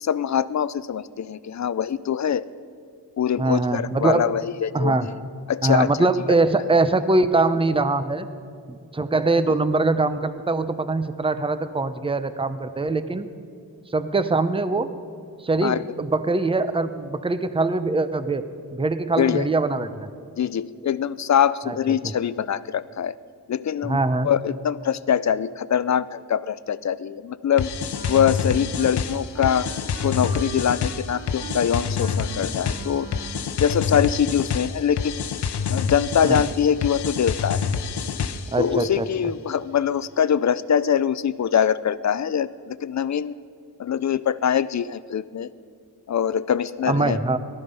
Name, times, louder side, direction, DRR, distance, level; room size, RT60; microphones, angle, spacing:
voice 1, 0.0-2.5 3.2-5.1 5.5-6.1 15.6-15.8 19.2-19.5 20.4-23.2 23.5-24.0 24.2-27.7 28.1-29.7 30.0-33.1 33.6-35.2 35.7-37.6 38.6-43.3 43.8-45.5 46.1-47.2, left 8 dB, 45° left, 17 dB, 0.4 m, -23 dB
voice 2, 3.4-4.3 4.7-5.1 5.6-8.3 8.7-13.3 13.9-14.9 15.4-18.4 18.7-20.1 21.7-21.8 23.8-24.3 36.2-36.4 38.5-39.1 46.9-47.4, right 3 dB, 15° right, 12 dB, 0.6 m, -22 dB
sound 1, 27.6-38.6, left 6 dB, 80° left, 0.8 m, -27 dB
Wind instrument woodwind instrument, 27.9-33.6, right 5 dB, 85° right, 1.3 m, -40 dB
18.5 x 13.0 x 5.4 m, 2.3 s
wide cardioid pair, 135°, 39 cm